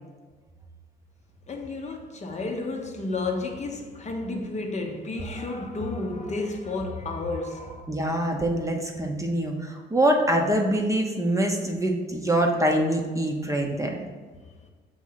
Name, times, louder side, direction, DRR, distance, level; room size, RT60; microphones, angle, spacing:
voice 1, 1.5-7.8, left 3 dB, 35° left, 0.7 m, -31 dB
voice 2, 7.9-14.0, right 1 dB, 15° right, 0.8 m, -24 dB
6.2 x 2.7 x 5.6 m
cardioid pair, 90°, 20 cm